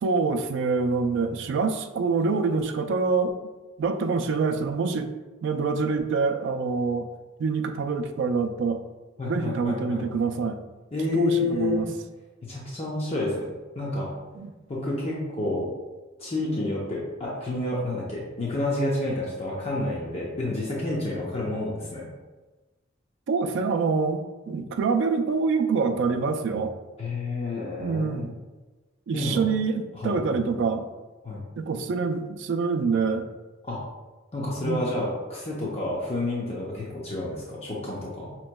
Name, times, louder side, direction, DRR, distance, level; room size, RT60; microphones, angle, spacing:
voice 1, 0.0-3.3 3.8-5.1 5.4-7.1 7.4-8.8 9.2-10.6 11.1-11.9 14.3-14.5 23.3-26.7 27.8-28.3 29.1-30.9 31.6-33.3 34.6-34.8, right 4 dB, 65° right, 6 dB, 0.3 m, -26 dB
voice 2, 9.2-10.0 10.9-11.8 12.5-13.5 13.8-14.1 14.7-15.7 16.2-22.0 27.0-28.3 29.1-29.5 29.9-30.4 31.2-31.4 33.6-33.8 34.3-38.4, left 2 dB, 30° left, -5 dB, 0.6 m, -29 dB
5.3 x 2.9 x 2.2 m, 1.2 s
head